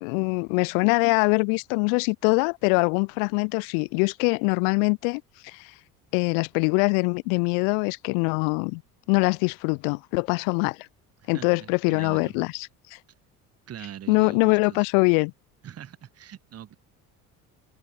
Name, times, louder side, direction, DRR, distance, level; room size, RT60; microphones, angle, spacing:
voice 1, 0.0-5.7 6.1-8.8 9.1-10.9 11.3-12.5 12.9-13.0 14.1-15.3, left 40 dB or more, 65° left, 0.5 m, -23 dB
voice 2, 11.2-12.3 13.7-14.9 15.6-16.7, right 10 dB, 35° right, 1.2 m, -42 dB
hypercardioid pair, 65°, 45 cm